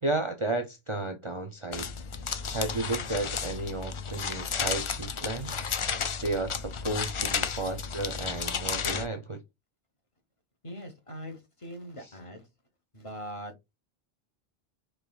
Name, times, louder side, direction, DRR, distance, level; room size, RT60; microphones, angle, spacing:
voice 1, 0.0-1.9 2.5-5.6 6.2-9.4 12.0-12.1, right 2 dB, 35° right, 0.6 m, -33 dB
sound 1, 1.7-9.1, left 6 dB, 50° left, 0.4 m, -33 dB
voice 2, 10.6-12.5 12.9-13.5, equal, 35° left, 1.0 m, -41 dB
4.9 x 3.3 x 2.3 m
omnidirectional pair, 1.0 m